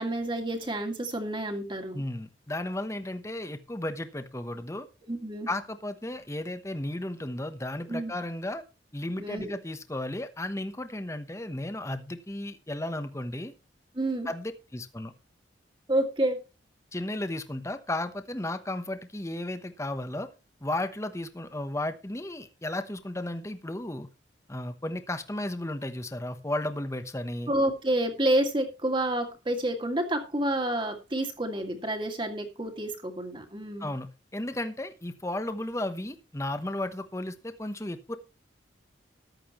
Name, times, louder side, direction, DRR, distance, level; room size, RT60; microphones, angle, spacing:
voice 1, 0.0-2.0 5.1-5.5 7.9-8.1 9.2-9.5 13.9-14.3 15.9-16.4 27.5-33.9, right 1 dB, 25° right, 4 dB, 2.2 m, -29 dB
voice 2, 1.9-4.9 5.5-8.6 8.9-13.5 14.3-15.1 16.9-20.3 20.6-24.1 24.5-27.5 33.8-38.2, left 1 dB, 15° left, 9 dB, 1.1 m, -34 dB
14.0 x 11.0 x 3.1 m, 0.28 s
head